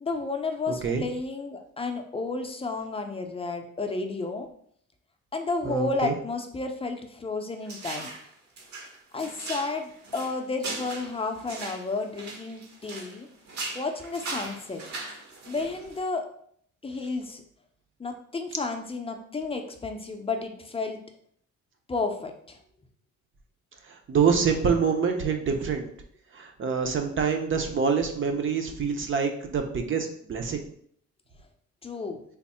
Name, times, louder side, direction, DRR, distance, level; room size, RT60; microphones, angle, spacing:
voice 1, 0.0-4.5 5.3-8.1 9.1-13.3 13.7-14.8 15.5-16.2 16.8-17.4 18.0-21.0 21.9-22.6 31.8-32.2, left 3 dB, 20° left, 4 dB, 0.5 m, -32 dB
voice 2, 0.7-1.0 5.6-6.1 23.9-25.8 26.3-30.6, right 6 dB, 40° right, 5 dB, 0.7 m, -26 dB
sound 1, 7.7-8.3 8.6-13.2 13.5-16.0, right 3 dB, 65° right, 1.0 m, -39 dB
3.5 x 2.0 x 4.2 m, 0.63 s
cardioid pair, 90°, 30 cm